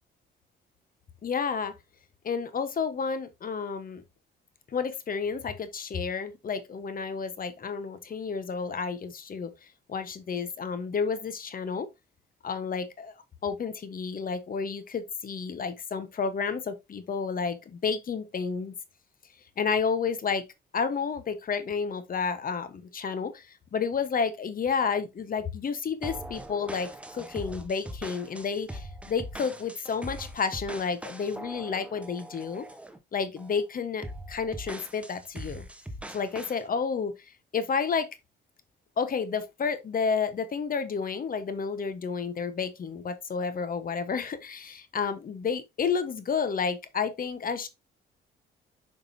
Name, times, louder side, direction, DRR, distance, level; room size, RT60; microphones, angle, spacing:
voice 1, 1.2-1.7 2.2-4.0 4.7-11.9 12.4-13.1 13.4-18.7 19.6-20.4 20.7-32.7 33.1-35.6 36.1-38.1 39.0-47.7, left 5 dB, 45° left, 1.2 m, -31 dB
sound 1, 26.0-33.0 33.4-33.6 34.0-36.6, right 1 dB, 5° right, 1.0 m, -41 dB
7.2 x 5.2 x 2.7 m
cardioid pair, 90°, 20 cm